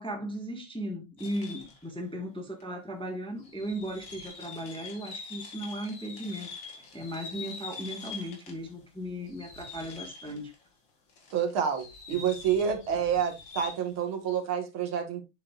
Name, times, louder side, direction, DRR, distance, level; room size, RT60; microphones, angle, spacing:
voice 1, 0.0-10.5 12.9-13.0, equal, 5° left, 1.2 m, -37 dB
sound 1, 1.2-1.9 2.6-2.7 3.4-8.7 9.0-10.6 11.1-14.0, left 4 dB, 65° left, 2.7 m, -44 dB
voice 2, 11.3-15.2, right 8 dB, 75° right, 2.3 m, -28 dB
8.3 x 7.3 x 2.4 m
omnidirectional pair, 2.3 m